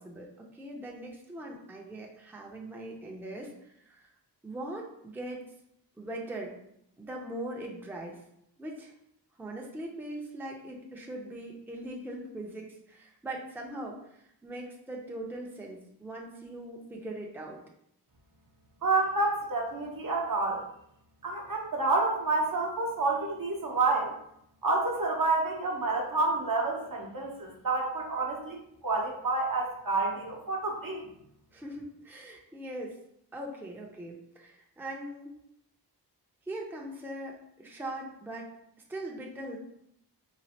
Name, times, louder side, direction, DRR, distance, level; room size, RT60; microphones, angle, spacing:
voice 1, 0.0-4.1 4.4-5.4 6.0-6.5 7.0-8.2 8.6-8.9 9.4-17.6 31.5-33.0 33.3-35.4 36.5-38.5 38.9-39.6, right 1 dB, 5° right, -1 dB, 0.6 m, -41 dB
voice 2, 18.8-20.6 21.2-24.1 24.6-28.6 28.8-31.1, right 3 dB, 55° right, -1 dB, 0.8 m, -29 dB
3.1 x 2.4 x 2.8 m, 0.74 s
cardioid pair, 45°, 42 cm